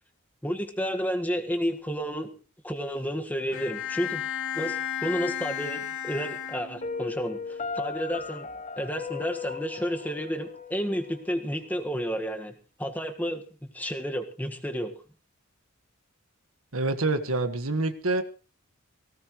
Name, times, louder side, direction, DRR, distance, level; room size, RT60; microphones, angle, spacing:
voice 1, 0.4-2.3 2.6-4.2 4.5-8.5 8.8-12.5 12.8-14.9, equal, 10° left, 4 dB, 1.7 m, -31 dB
Bowed string instrument, 3.5-7.2, left 9 dB, 60° left, 3.3 m, -33 dB
Piano, 6.8-11.8, left 5 dB, 35° left, 1.2 m, -37 dB
voice 2, 16.7-18.2, right 2 dB, 70° right, 8 dB, 1.7 m, -26 dB
19.0 x 18.0 x 3.2 m, 0.35 s
head